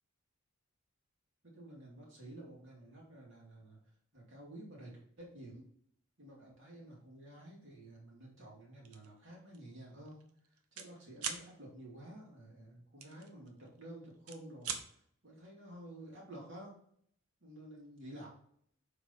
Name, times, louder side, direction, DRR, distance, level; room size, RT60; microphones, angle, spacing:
voice 1, 1.4-3.8 4.1-5.6 6.2-10.3 10.7-14.7 15.2-16.8 17.4-18.3, right 1 dB, 55° right, -3 dB, 2.8 m, -51 dB
sound 1, 8.9-9.1 9.5-9.7 10.0-10.9 11.2-11.4 13.0-13.8 14.1-14.8, right 7 dB, 85° right, 1.0 m, -41 dB
7.0 x 5.0 x 4.1 m, 0.64 s
head